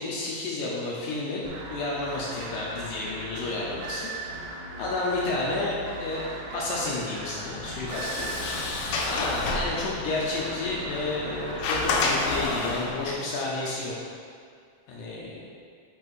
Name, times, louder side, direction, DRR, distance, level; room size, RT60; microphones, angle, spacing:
voice 1, 0.0-4.1 4.8-6.3 6.5-8.3 9.1-13.9 14.9-15.4, left 2 dB, 75° left, -5 dB, 1.9 m, -31 dB
sound 1, 1.4-12.4, right 2 dB, 75° right, 2.1 m, -39 dB
Sliding door, 7.5-13.1, left 3 dB, 90° left, 2.5 m, -30 dB
9.1 x 5.5 x 2.5 m, 2.2 s
omnidirectional pair, 4.2 m